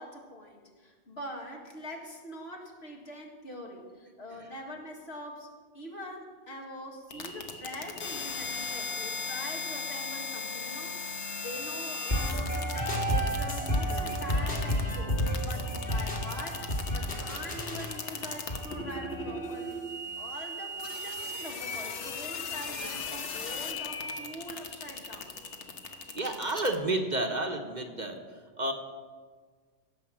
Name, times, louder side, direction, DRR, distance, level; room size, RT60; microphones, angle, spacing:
voice 1, 0.0-5.5 5.7-19.8 20.2-25.3, equal, 65° left, 1 dB, 2.1 m, -43 dB
sound 1, 7.1-26.8, left 3 dB, 80° left, 1.3 m, -38 dB
sound 2, 12.1-19.9, equal, 40° left, 2.6 m, -31 dB
voice 2, 26.1-28.2 28.6-28.7, right 2 dB, 40° right, 4 dB, 1.0 m, -30 dB
16.5 x 5.5 x 7.3 m, 1.5 s
omnidirectional pair, 1.2 m